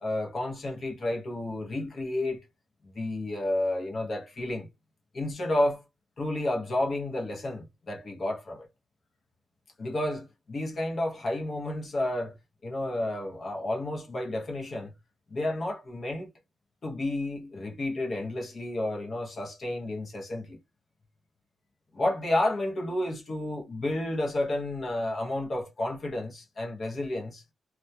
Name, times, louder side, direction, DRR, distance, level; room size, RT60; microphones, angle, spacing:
voice 1, 0.0-2.4 2.8-4.7 5.1-5.8 6.2-8.7 9.8-12.4 12.6-14.9 15.3-16.3 16.8-20.6 21.9-27.4, left 1 dB, 35° left, 0.7 m, -31 dB
2.2 x 2.2 x 2.7 m
cardioid pair, 135°, 0 cm